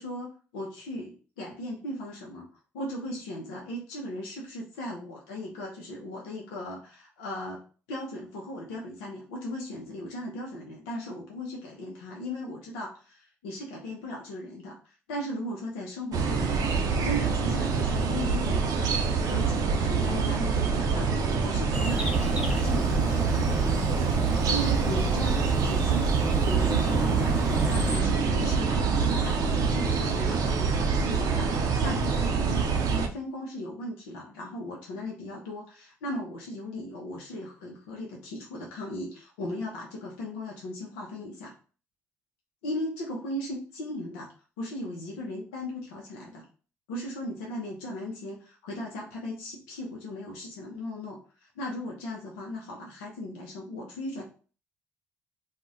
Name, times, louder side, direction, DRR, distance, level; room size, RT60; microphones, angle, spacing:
voice 1, 0.0-2.5 2.7-7.6 7.9-18.9 19.3-23.9 24.5-30.7 31.0-31.5 31.8-41.5 42.6-44.3 44.6-46.4 46.9-54.2, left 1 dB, 85° left, -2 dB, 0.5 m, -37 dB
sound 1, 16.1-33.1, right 5 dB, 60° right, 0.5 m, -26 dB
sound 2, 21.7-28.0, right 2 dB, 10° right, 1.0 m, -32 dB
2.3 x 2.1 x 3.8 m, 0.38 s
hypercardioid pair, 55°, 7 cm